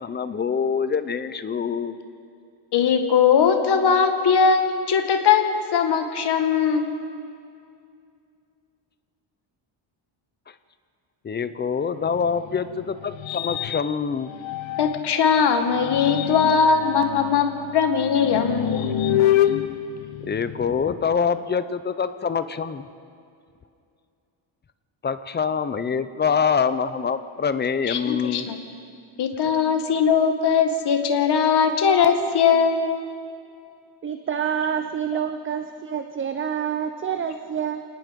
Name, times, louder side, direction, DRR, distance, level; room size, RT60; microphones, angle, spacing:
voice 1, 0.0-2.0 11.2-14.3 20.2-22.9 25.0-28.5, left 6 dB, 20° left, 12 dB, 0.6 m, -25 dB
voice 2, 2.7-5.4 5.7-7.0 14.8-17.5 17.7-18.9 27.9-28.6 29.2-33.0, left 6 dB, 50° left, 6 dB, 1.9 m, -20 dB
sound 1, 12.0-15.2 15.7-20.9, left 11 dB, 70° left, 1.0 m, -27 dB
voice 3, 34.0-37.8, right 8 dB, 25° right, 8 dB, 0.6 m, -27 dB
29.0 x 18.5 x 5.2 m, 2.4 s
cardioid pair, 170°, 49 cm